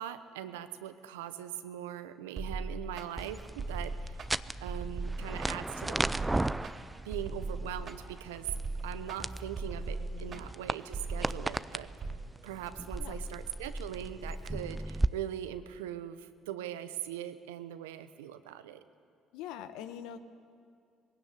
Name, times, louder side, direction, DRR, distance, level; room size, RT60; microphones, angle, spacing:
voice 1, 0.0-4.2 4.6-6.3 7.0-8.5 8.8-11.9 12.4-18.8, right 11 dB, 85° right, 12 dB, 0.9 m, -41 dB
sound 1, 2.4-12.2, right 3 dB, 50° right, 3.1 m, -39 dB
sound 2, 3.2-15.1, right 2 dB, 15° right, 0.6 m, -36 dB
voice 2, 10.0-10.4 12.8-13.2 19.3-20.2, left 10 dB, 75° left, 11 dB, 1.1 m, -44 dB
21.0 x 16.5 x 9.8 m, 2.3 s
hypercardioid pair, 60°, 0 cm